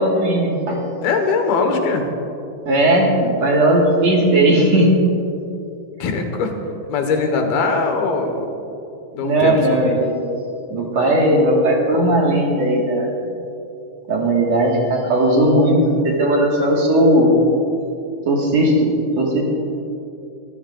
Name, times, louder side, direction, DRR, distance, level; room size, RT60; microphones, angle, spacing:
voice 1, 0.0-0.8 2.6-5.0 9.2-10.2 10.7-13.1 14.1-17.3 18.3-18.9 19.2-19.4, right 1 dB, 55° right, -2 dB, 2.6 m, -17 dB
voice 2, 1.0-2.0 6.0-6.5 6.9-8.5 9.1-9.6, left 4 dB, 90° left, 4 dB, 3.3 m, -20 dB
24.0 x 15.0 x 2.5 m, 2.7 s
omnidirectional pair, 4.1 m